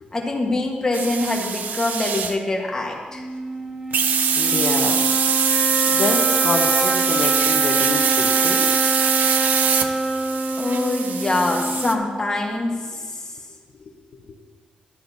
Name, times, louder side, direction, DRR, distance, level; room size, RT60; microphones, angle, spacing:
voice 1, 0.1-3.2 10.6-13.2, left 2 dB, 20° left, -1 dB, 1.4 m, -24 dB
sound 1, 0.9-2.4 3.9-11.9, right 7 dB, 70° right, 0.6 m, -22 dB
sound 2, 3.1-12.5, right 2 dB, 15° right, 0.7 m, -26 dB
voice 2, 4.4-5.1 5.9-8.9 13.8-14.4, left 4 dB, 55° left, 1 dB, 1.1 m, -28 dB
14.0 x 11.0 x 2.8 m, 1.4 s
wide cardioid pair, 140°, 3 cm